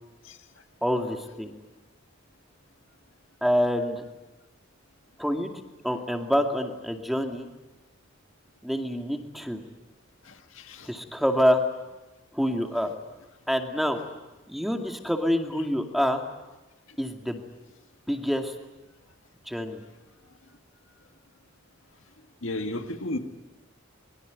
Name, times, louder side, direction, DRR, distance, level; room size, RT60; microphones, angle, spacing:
voice 1, 0.8-1.5 3.4-4.0 5.2-7.5 8.6-9.6 10.8-11.6 12.3-12.9 13.5-14.0 14.5-16.2 17.0-17.4 18.1-18.5 19.5-19.8, equal, ahead, 4 dB, 2.3 m, -26 dB
voice 2, 10.2-10.9 22.4-23.2, left 1 dB, 85° left, 6 dB, 2.0 m, -34 dB
24.0 x 22.5 x 9.4 m, 1.1 s
head